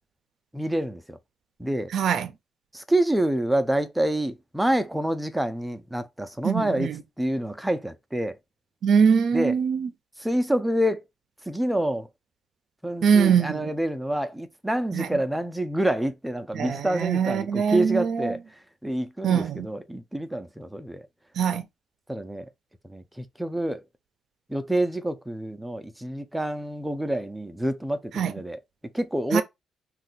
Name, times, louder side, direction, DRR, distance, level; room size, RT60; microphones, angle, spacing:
voice 1, 0.5-1.2 1.6-1.9 2.7-8.4 9.3-9.5 10.2-11.0 11.5-12.1 12.8-18.4 18.8-21.0 22.1-22.5 22.9-23.8 24.5-28.6 28.9-29.4, right 1 dB, 5° right, 0.4 m, -27 dB
voice 2, 1.9-2.3 6.4-7.0 8.8-9.9 13.0-13.7 14.9-15.2 16.5-18.3 19.2-19.7 21.4-21.6 28.1-28.3 29.3-29.4, right 7 dB, 65° right, 0.4 m, -23 dB
2.6 x 2.2 x 4.0 m
cardioid pair, 90°, 0 cm